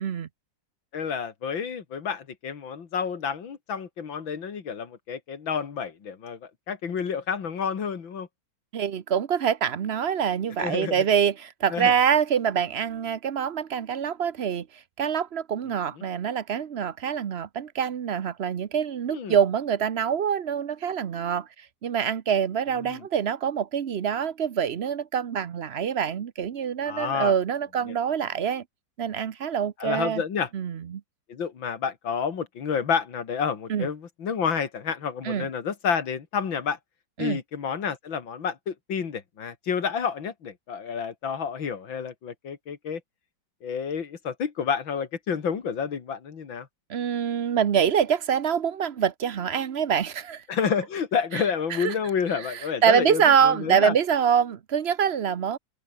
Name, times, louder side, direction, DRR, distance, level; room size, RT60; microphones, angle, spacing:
voice 1, 0.9-8.3 10.6-11.0 11.7-11.9 19.1-19.4 22.8-23.0 26.9-27.3 29.8-30.5 31.3-36.8 37.2-43.0 43.6-46.7 50.5-53.9, left 6 dB, 90° left, 2.9 m, -29 dB
voice 2, 8.7-21.5 21.8-28.6 29.0-30.2 30.5-31.0 33.7-33.9 35.2-35.5 37.2-37.4 46.9-50.4 51.3-51.9 52.4-55.6, right 8 dB, 50° right, 0.8 m, -25 dB
open air
omnidirectional pair, 2.1 m